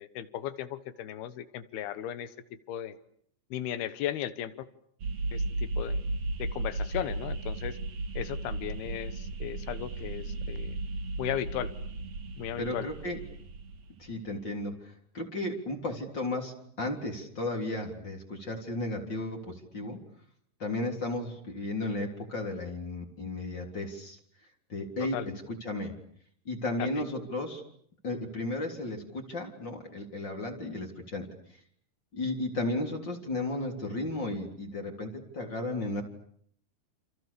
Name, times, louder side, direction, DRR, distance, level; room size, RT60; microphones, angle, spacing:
voice 1, 0.0-2.3 2.7-3.0 3.5-4.7 5.3-6.0 6.4-7.8 8.2-10.8 11.2-11.7 12.4-12.9 25.1-25.3 26.8-26.9, left 11 dB, 85° left, 13 dB, 3.2 m, -36 dB
sound 1, 5.0-14.3, right 2 dB, 50° right, 2.5 m, -35 dB
voice 2, 12.6-13.2 14.0-20.0 20.6-24.2 24.7-25.3 25.6-26.0 26.5-27.6 28.0-31.6 32.1-36.0, left 2 dB, 30° left, 2 dB, 3.8 m, -34 dB
28.5 x 28.5 x 7.0 m, 0.65 s
omnidirectional pair, 4.4 m